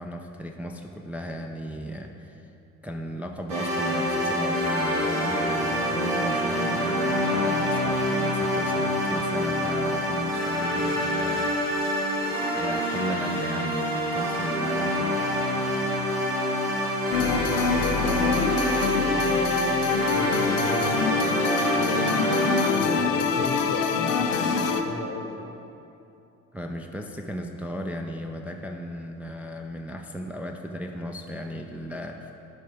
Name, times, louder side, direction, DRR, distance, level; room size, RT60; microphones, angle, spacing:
voice 1, 0.0-2.5 2.8-11.9 12.6-15.2 19.3-19.5 26.5-32.3, equal, 5° right, 2 dB, 0.5 m, -35 dB
sound 1, 3.5-22.7, equal, 75° right, 1.7 m, -26 dB
sound 2, 17.1-24.8, left 5 dB, 75° left, 0.6 m, -26 dB
voice 2, 17.1-19.4 20.0-21.3 21.5-22.2 22.7-25.5, left 5 dB, 45° left, 6 dB, 0.9 m, -35 dB
12.0 x 5.1 x 4.7 m, 2.8 s
figure-of-eight pair, 50°, 38 cm